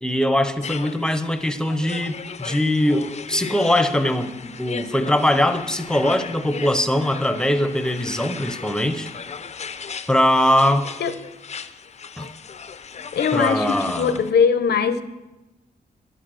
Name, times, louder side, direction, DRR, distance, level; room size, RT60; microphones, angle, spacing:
voice 1, 0.0-9.1 10.1-10.9 12.2-12.3 13.3-14.2, left 1 dB, 5° left, 9 dB, 0.7 m, -21 dB
sound 1, 0.6-14.3, left 6 dB, 40° left, 0.5 m, -36 dB
voice 2, 13.1-15.0, left 6 dB, 80° left, 11 dB, 0.8 m, -20 dB
10.5 x 8.8 x 6.3 m, 1.0 s
wide cardioid pair, 140°, 17 cm